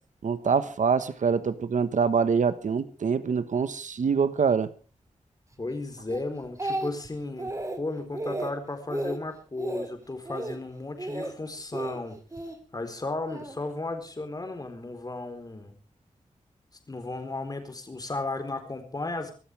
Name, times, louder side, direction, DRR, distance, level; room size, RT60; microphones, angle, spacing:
voice 1, 0.2-4.7, right 6 dB, 75° right, 1.3 m, -25 dB
voice 2, 5.6-7.5 7.8-12.2 12.7-15.7 16.9-19.3, left 2 dB, 30° left, 4.2 m, -34 dB
Speech, 6.1-7.1 7.4-7.8 8.1-8.5 8.9-9.2 9.6-9.9 10.2-10.6 11.0-11.3 11.7-12.6 13.3-13.6, right 2 dB, 25° right, 2.7 m, -33 dB
25.0 x 13.5 x 3.4 m
wide cardioid pair, 110°, 13 cm